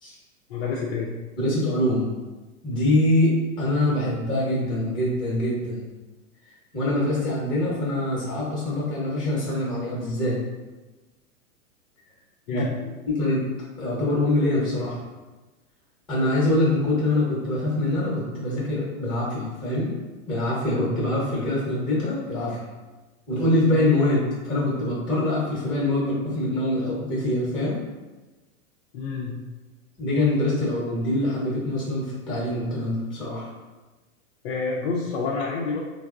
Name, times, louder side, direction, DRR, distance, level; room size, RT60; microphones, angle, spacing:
voice 1, 0.5-1.1 12.5-12.7 28.9-29.4 34.4-35.8, left 4 dB, 55° left, -4 dB, 0.5 m, -28 dB
voice 2, 1.4-2.1 2.6-5.8 6.7-10.4 12.5-12.6 13.1-13.4 13.8-15.0 16.1-19.9 20.3-22.7 23.3-27.8 30.0-33.5, left 1 dB, 10° left, -6 dB, 0.9 m, -24 dB
3.4 x 2.0 x 2.4 m, 1.2 s
hypercardioid pair, 130°, 40 cm